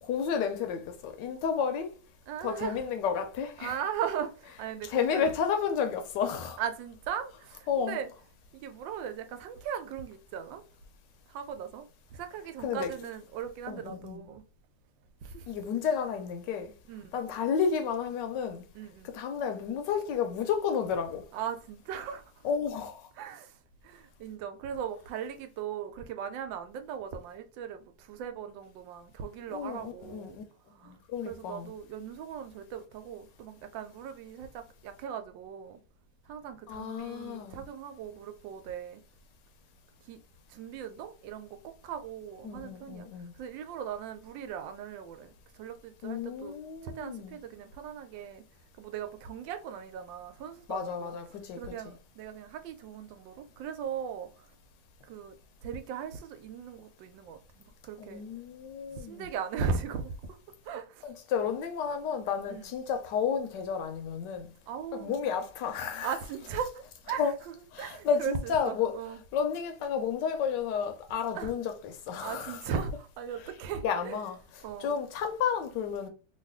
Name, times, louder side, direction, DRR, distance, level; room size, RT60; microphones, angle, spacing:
voice 1, 0.0-2.0 2.4-3.8 4.8-6.6 7.7-8.0 12.6-12.9 13.7-14.2 15.5-16.7 17.1-18.6 19.1-21.2 22.4-23.1 29.5-30.4 30.8-31.7 36.7-37.6 42.4-43.3 46.0-47.4 50.7-51.9 58.0-59.3 61.0-64.5 64.9-66.1 67.2-67.3 67.7-68.9 69.3-72.6 73.8-76.1, left 7 dB, 75° left, 1.2 m, -32 dB
voice 2, 2.3-2.8 3.6-5.3 6.6-8.1 8.5-10.6 11.3-11.9 12.1-14.4 15.2-15.5 16.9-17.2 18.7-19.1 21.3-22.4 23.2-23.6 23.8-30.4 30.7-31.0 31.2-35.8 36.3-39.0 40.1-40.2 40.5-43.1 43.4-46.5 46.8-48.4 48.8-51.1 51.6-54.5 55.0-58.2 58.9-60.1 60.6-61.1 62.5-62.7 64.7-65.1 66.0-69.2 71.3-71.5 72.2-74.2 74.6-74.9, right 7 dB, 85° right, 1.3 m, -38 dB
3.1 x 2.4 x 3.5 m
omnidirectional pair, 2.0 m